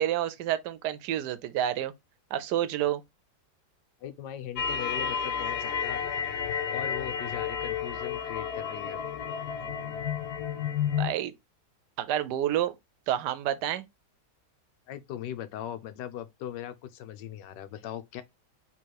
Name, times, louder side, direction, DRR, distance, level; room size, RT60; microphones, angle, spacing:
voice 1, 0.0-1.9 2.3-3.0 11.0-11.3 12.0-12.7 13.1-13.8, right 11 dB, 80° right, 1.2 m, -29 dB
voice 2, 4.0-6.0 6.7-9.0 14.9-18.2, left 10 dB, 90° left, 1.3 m, -39 dB
sound 1, 4.6-11.1, left 7 dB, 70° left, 1.2 m, -31 dB
3.9 x 2.9 x 4.5 m
omnidirectional pair, 1.8 m